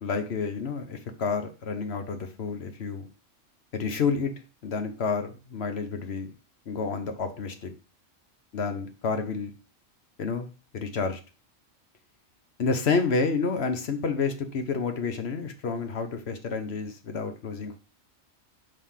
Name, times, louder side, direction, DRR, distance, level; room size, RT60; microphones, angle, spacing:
voice 1, 0.0-3.1 3.7-4.3 4.6-6.3 6.7-7.7 8.5-9.5 10.2-10.5 10.7-11.2 12.6-17.8, left 4 dB, 55° left, 7 dB, 1.1 m, -29 dB
5.3 x 3.4 x 5.6 m, 0.32 s
omnidirectional pair, 1.3 m